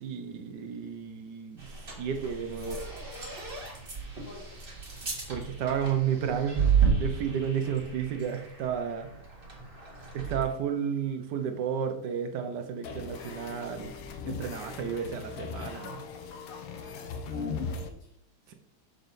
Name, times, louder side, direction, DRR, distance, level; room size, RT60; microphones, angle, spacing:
voice 1, 0.0-2.8 5.3-9.1 10.1-14.0 14.2-16.0 18.5-18.6, right 7 dB, 65° right, 6 dB, 1.3 m, -32 dB
sound 1, 1.6-10.4, right 6 dB, 30° right, 1.5 m, -32 dB
voice 2, 4.3-4.6 16.8-18.1, left 2 dB, 45° left, -3 dB, 2.6 m, -49 dB
sound 2, 12.8-17.9, left 5 dB, 85° left, 1.7 m, -38 dB
6.7 x 5.2 x 4.0 m, 0.71 s
omnidirectional pair, 2.2 m